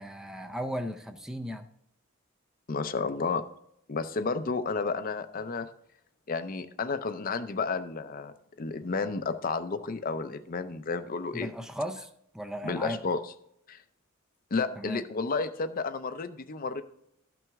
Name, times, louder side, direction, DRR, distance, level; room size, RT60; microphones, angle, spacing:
voice 1, 0.0-1.7 11.3-12.1 12.3-13.0 14.8-15.0, equal, 5° right, 6 dB, 0.4 m, -36 dB
voice 2, 2.7-3.4 3.9-5.7 6.3-11.5 12.6-13.2 13.7-13.8 14.5-16.8, left 4 dB, 45° left, 11 dB, 0.6 m, -31 dB
12.5 x 6.0 x 3.5 m, 0.75 s
head